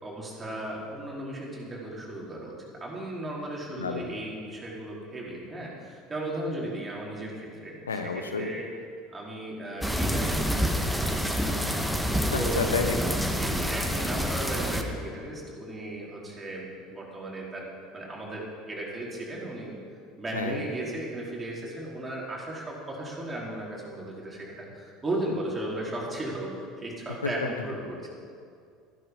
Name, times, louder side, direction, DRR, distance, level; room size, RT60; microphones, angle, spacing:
voice 1, 0.0-8.7 9.1-11.8 12.3-12.7 13.3-17.7 17.9-19.8 20.2-28.1, right 1 dB, 20° right, -4 dB, 4.5 m, -36 dB
voice 2, 3.8-4.1 7.9-8.5 12.2-13.2 20.3-20.6 27.2-27.3, left 4 dB, 80° left, 6 dB, 0.9 m, -31 dB
sound 1, 9.8-14.8, equal, ahead, 1.3 m, -27 dB
14.5 x 12.0 x 5.5 m, 2.3 s
figure-of-eight pair, 65°, 0 cm